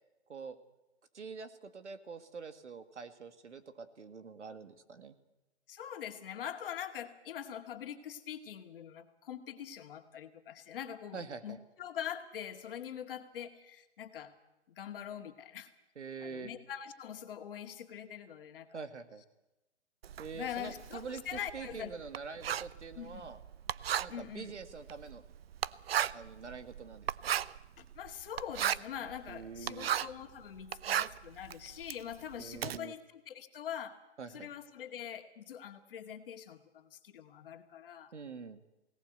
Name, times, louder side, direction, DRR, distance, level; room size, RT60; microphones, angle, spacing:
voice 1, 1.1-5.1 11.1-11.6 16.0-16.5 18.7-19.2 20.2-23.4 24.0-25.2 26.1-27.4 29.3-29.9 32.4-32.9 34.2-34.5 38.1-38.6, right 5 dB, 85° right, 10 dB, 2.1 m, -45 dB
voice 2, 5.7-14.3 14.7-15.7 16.2-18.8 20.3-21.9 23.0-23.3 24.1-24.6 27.8-34.0 34.3-38.1, left 9 dB, 55° left, 6 dB, 2.2 m, -43 dB
Writing, 20.0-30.2 30.6-32.8, right 10 dB, 60° right, 0.7 m, -36 dB
22.0 x 18.0 x 8.0 m, 0.99 s
hypercardioid pair, 140°, 34 cm